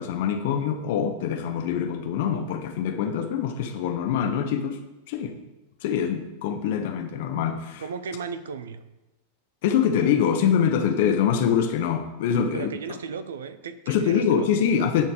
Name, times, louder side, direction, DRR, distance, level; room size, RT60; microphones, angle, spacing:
voice 1, 0.0-4.8 5.1-5.4 5.8-7.8 9.6-12.7 13.9-15.0, left 8 dB, 50° left, 6 dB, 1.1 m, -24 dB
voice 2, 7.8-8.8 12.5-14.6, right 5 dB, 65° right, 13 dB, 0.7 m, -35 dB
10.5 x 4.5 x 6.8 m, 1.1 s
figure-of-eight pair, 90°, 0 cm